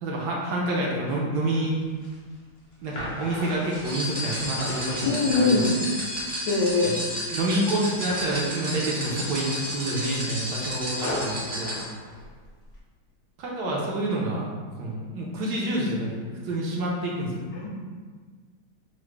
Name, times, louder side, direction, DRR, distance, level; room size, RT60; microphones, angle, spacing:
voice 1, 0.0-1.7 2.8-5.1 5.3-5.7 6.8-7.0 7.3-11.8 13.4-14.5 14.8-17.3, right 1 dB, 70° right, -3 dB, 1.1 m, -28 dB
sound 1, 1.8-6.7 7.1-7.6 7.9-8.4 8.9-12.8, left 1 dB, 45° left, 0.8 m, -39 dB
sound 2, 3.8-11.8, equal, 25° right, 0.3 m, -32 dB
voice 2, 5.0-5.8 6.5-7.0 17.5-17.7, left 3 dB, 70° left, -1 dB, 1.1 m, -22 dB
5.8 x 2.1 x 3.1 m, 1.5 s
omnidirectional pair, 2.2 m